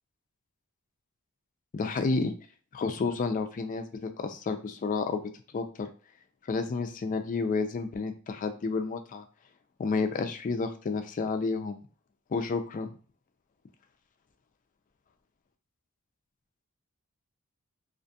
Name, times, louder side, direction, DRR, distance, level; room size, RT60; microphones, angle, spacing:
voice 1, 1.7-2.3 2.7-5.2 5.5-5.9 6.5-9.2 9.8-11.8 12.3-12.9, left 4 dB, 40° left, 8 dB, 0.3 m, -30 dB
2.4 x 2.3 x 2.6 m, 0.39 s
head